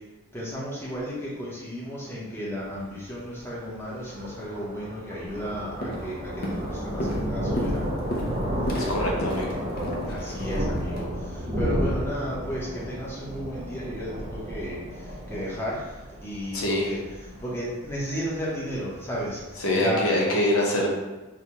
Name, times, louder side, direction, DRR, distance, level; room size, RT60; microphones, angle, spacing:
voice 1, 0.3-7.8 10.1-20.2, equal, 10° left, -7 dB, 0.7 m, -34 dB
Thunder, 2.6-19.5, equal, 25° right, 0.5 m, -32 dB
Walk footsteps, 5.3-5.5 5.8-6.1 6.4-11.0, equal, 45° left, 0.5 m, -33 dB
voice 2, 8.8-9.6 16.5-16.9 19.6-20.9, left 1 dB, 75° left, -1 dB, 0.7 m, -24 dB
4.9 x 2.1 x 2.8 m, 1.1 s
head